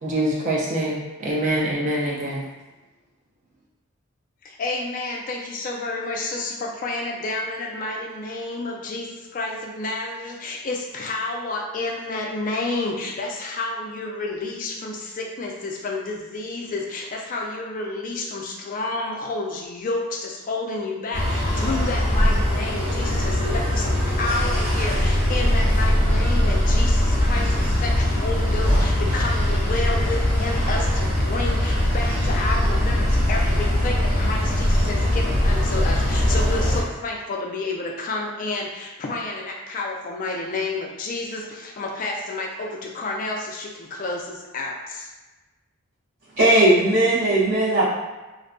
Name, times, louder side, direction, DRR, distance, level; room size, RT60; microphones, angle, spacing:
voice 1, 0.0-2.4, right 1 dB, 35° right, -4 dB, 0.4 m, -24 dB
voice 2, 4.4-45.1, left 2 dB, 35° left, 0 dB, 0.3 m, -30 dB
sound 1, 21.1-36.8, left 1 dB, 80° right, 1.4 m, -21 dB
voice 3, 46.4-47.9, right 1 dB, 65° right, -14 dB, 0.8 m, -17 dB
2.5 x 2.2 x 2.5 m, 1.1 s
head